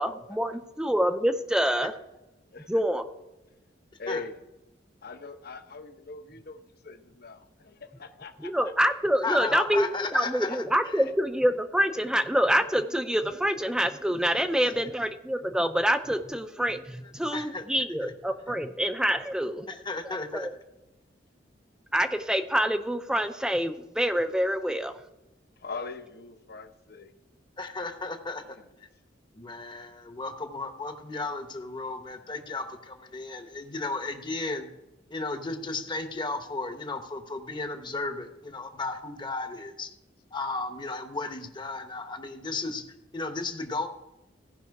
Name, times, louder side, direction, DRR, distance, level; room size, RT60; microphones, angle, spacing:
voice 1, 0.0-1.9 2.7-3.0 8.4-19.7 20.3-20.5 21.9-24.9, equal, 5° right, 8 dB, 0.5 m, -26 dB
voice 2, 4.0-4.4 5.0-8.5 10.4-10.6 25.6-27.1 28.5-28.7, left 4 dB, 55° left, 8 dB, 0.8 m, -41 dB
voice 3, 9.2-11.0 14.6-14.7 17.3-17.6 18.0-18.1 19.7-20.5 27.6-28.9 29.3-34.7 35.1-39.9 40.3-42.8 43.1-43.9, left 3 dB, 25° left, 7 dB, 0.9 m, -34 dB
16.0 x 5.5 x 4.7 m, 0.99 s
head